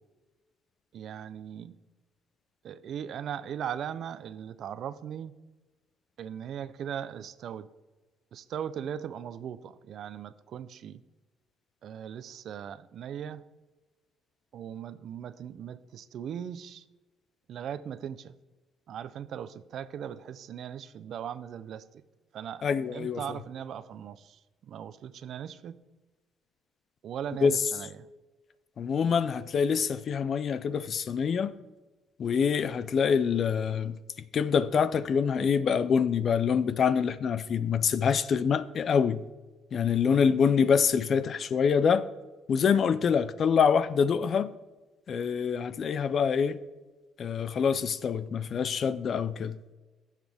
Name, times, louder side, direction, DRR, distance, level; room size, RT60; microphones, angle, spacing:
voice 1, 0.9-1.7 2.6-5.3 6.2-7.7 8.3-11.0 11.8-13.4 14.5-16.8 17.5-18.4 18.9-21.8 22.3-22.7 22.9-25.8 27.0-28.1, right 9 dB, 60° right, 0.5 m, -39 dB
voice 2, 22.6-23.2 27.4-27.5 28.8-31.5 32.2-34.0 34.3-39.2 39.7-42.1 42.5-44.5 45.1-46.6 47.2-49.6, left 6 dB, 45° left, 0.5 m, -25 dB
16.0 x 7.4 x 3.5 m
cardioid pair, 125°, 0 cm